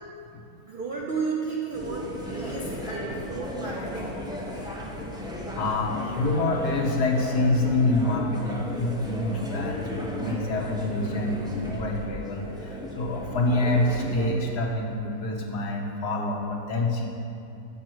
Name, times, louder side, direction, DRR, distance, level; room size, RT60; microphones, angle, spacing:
voice 1, 0.7-4.2 4.5-4.8, right 4 dB, 45° right, -3 dB, 0.8 m, -33 dB
sound 1, 1.7-14.3, equal, 5° right, 0.9 m, -35 dB
voice 2, 5.3-17.1, left 2 dB, 85° left, 0 dB, 1.7 m, -27 dB
9.0 x 6.5 x 6.2 m, 2.7 s
omnidirectional pair, 1.7 m